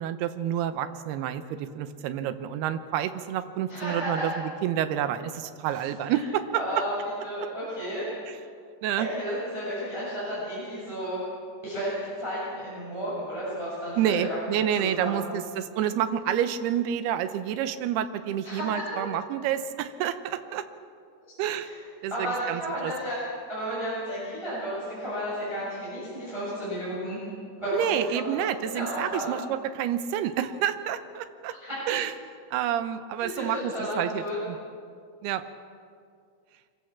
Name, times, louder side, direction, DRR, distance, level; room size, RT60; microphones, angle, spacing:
voice 1, 0.0-6.6 8.3-8.4 8.8-9.1 14.0-20.6 21.4-21.7 22.0-22.9 27.7-31.5 31.9-32.1 32.5-34.6 35.2-35.4, right 10 dB, 75° right, 11 dB, 2.6 m, -29 dB
voice 2, 3.7-4.3 5.7-6.2 6.5-7.0 7.2-8.1 9.0-11.2 11.6-14.3 14.8-15.3 18.4-19.1 21.6-21.8 22.1-23.2 23.5-27.2 27.6-27.9 28.3-29.4 31.5-31.8 33.2-34.4, equal, 5° right, -10 dB, 6.8 m, -33 dB
25.0 x 15.5 x 7.3 m, 2.2 s
omnidirectional pair, 5.0 m